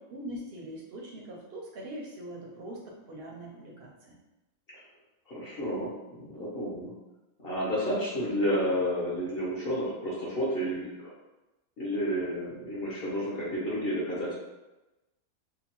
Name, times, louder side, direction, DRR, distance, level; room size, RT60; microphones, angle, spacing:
voice 1, 0.1-4.1, right 1 dB, 60° right, -2 dB, 0.6 m, -42 dB
voice 2, 5.3-6.9 7.4-11.1 11.8-14.3, equal, 50° left, -7 dB, 0.8 m, -31 dB
2.8 x 2.2 x 2.9 m, 1.0 s
omnidirectional pair, 1.5 m